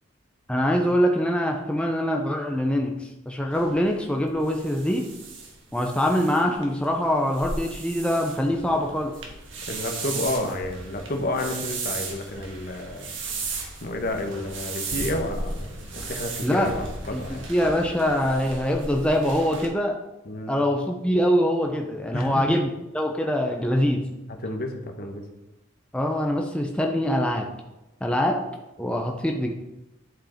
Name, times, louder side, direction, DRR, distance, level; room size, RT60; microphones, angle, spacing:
voice 1, 0.5-5.0 5.7-9.1 16.4-16.7 17.1-20.0 20.5-24.0 25.9-27.5 28.0-28.4 28.8-29.5, equal, 5° left, 1 dB, 0.7 m, -24 dB
sound 1, 3.5-19.7, right 3 dB, 70° right, 1.7 m, -36 dB
voice 2, 9.7-13.1 13.8-17.5 20.2-20.5 22.1-22.4 24.4-25.2, left 1 dB, 50° left, 4 dB, 1.1 m, -30 dB
10.0 x 5.2 x 4.4 m, 0.98 s
head